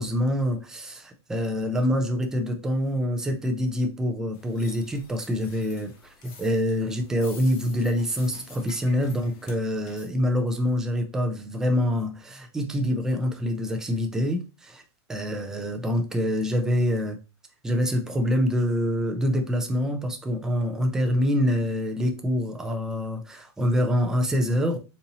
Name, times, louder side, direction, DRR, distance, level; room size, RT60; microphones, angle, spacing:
voice 1, 0.0-5.9 6.2-14.8 15.1-17.2 17.6-24.8, equal, 5° right, 0.3 m, -25 dB
sound 1, 4.3-10.1, left 5 dB, 30° left, 0.7 m, -49 dB
4.1 x 2.8 x 2.6 m
supercardioid pair, 165°, 14 cm